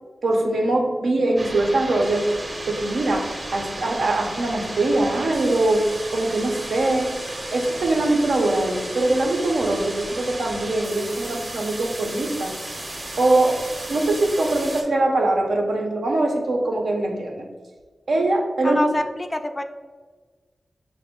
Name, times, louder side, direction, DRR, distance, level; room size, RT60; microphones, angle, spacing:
voice 1, 0.2-2.3 2.7-7.1 7.5-12.5 13.2-13.6 13.9-17.5 18.1-18.9, right 2 dB, 85° right, 2 dB, 0.6 m, -22 dB
sound 1, 1.4-14.8, right 1 dB, 45° right, 0.6 m, -34 dB
voice 2, 18.6-19.6, left 1 dB, 25° left, 8 dB, 0.3 m, -25 dB
5.8 x 2.1 x 3.6 m, 1.4 s
wide cardioid pair, 75°, 0 cm